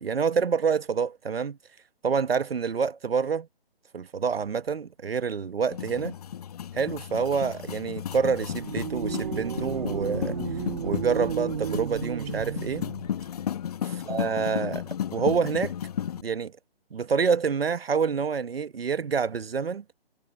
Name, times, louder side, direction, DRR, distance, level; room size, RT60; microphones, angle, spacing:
voice 1, 0.0-1.6 2.0-3.5 3.9-6.1 6.7-10.4 10.8-12.9 13.8-14.8 15.1-15.7 16.2-16.5 16.9-19.8, right 6 dB, 70° right, 1.3 m, -27 dB
sound 1, 5.7-16.2, left 9 dB, 40° left, 1.1 m, -34 dB
sound 2, 8.3-13.1, right 7 dB, 50° right, 4.9 m, -33 dB
figure-of-eight pair, 145°, 31 cm